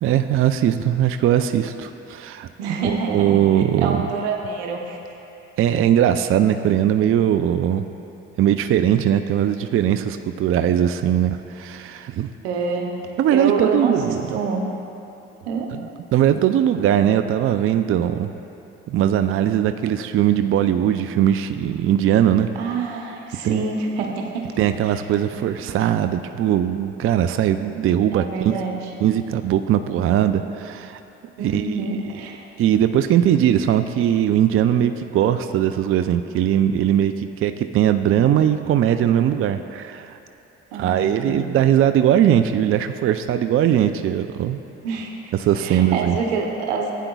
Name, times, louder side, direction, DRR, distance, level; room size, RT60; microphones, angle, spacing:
voice 1, 0.0-4.0 5.6-7.9 8.4-12.3 13.2-14.3 15.7-18.3 18.9-22.5 23.4-23.6 24.6-28.6 29.0-31.0 31.4-32.0 32.6-40.2 40.7-44.6 45.3-46.2, right 10 dB, 45° right, 9 dB, 0.4 m, -20 dB
voice 2, 2.6-3.4 3.8-5.0 12.4-12.9 13.3-14.7 15.4-15.7 22.5-24.5 24.9-25.0 28.1-28.9 31.4-32.4 40.7-41.5 44.8-45.1 45.6-46.9, right 4 dB, 85° right, 1 dB, 1.0 m, -26 dB
15.0 x 9.1 x 2.3 m, 2.9 s
hypercardioid pair, 55°, 32 cm